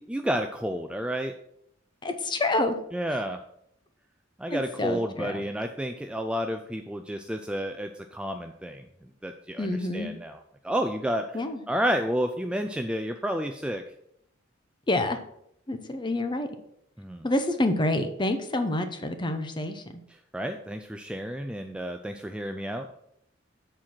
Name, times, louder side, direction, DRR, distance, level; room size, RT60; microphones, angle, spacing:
voice 1, 0.0-1.3 2.9-3.4 4.4-8.9 9.2-11.3 11.7-13.8 17.0-17.3 20.3-22.9, equal, 5° right, 6 dB, 0.3 m, -30 dB
voice 2, 2.0-2.8 4.5-5.4 9.6-10.1 11.3-11.6 14.9-15.2 15.7-16.5 17.2-20.0, left 1 dB, 25° left, 8 dB, 0.7 m, -28 dB
7.3 x 4.4 x 5.9 m, 0.74 s
head